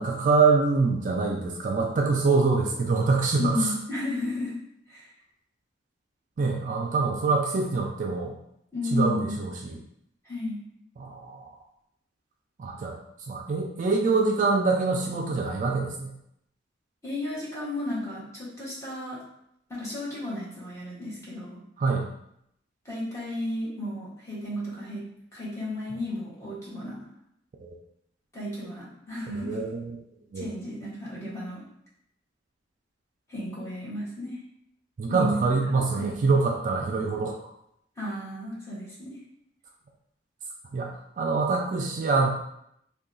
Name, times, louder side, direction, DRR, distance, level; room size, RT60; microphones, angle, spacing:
voice 1, 0.0-3.7 6.4-8.3 8.9-9.5 11.0-11.4 12.6-13.0 13.3-16.1 21.8-22.1 29.5-29.8 30.3-30.5 35.0-37.4 40.7-42.3, right 4 dB, 40° right, 1 dB, 0.3 m, -25 dB
voice 2, 3.4-4.5 4.9-5.1 8.7-9.4 10.2-10.6 17.0-19.2 19.7-21.6 22.8-25.0 25.3-27.0 28.3-29.6 30.3-31.6 33.3-34.4 35.1-36.2 38.0-39.2, left 1 dB, 15° left, -8 dB, 1.1 m, -33 dB
2.8 x 2.2 x 3.8 m, 0.76 s
head